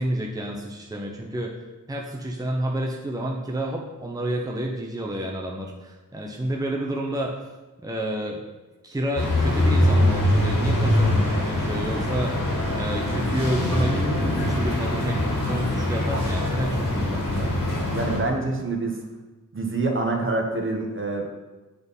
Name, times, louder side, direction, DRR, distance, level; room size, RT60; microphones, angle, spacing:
voice 1, 0.0-1.5 1.9-7.4 7.8-8.5 8.8-14.0 14.4-17.5, right 1 dB, 10° right, -1 dB, 0.9 m, -30 dB
sound 1, 9.2-18.2, left 1 dB, 85° left, 2.2 m, -23 dB
voice 2, 17.9-19.0 19.5-21.3, right 3 dB, 40° right, 1 dB, 1.2 m, -26 dB
7.8 x 4.1 x 5.5 m, 1.2 s
wide cardioid pair, 75°, 33 cm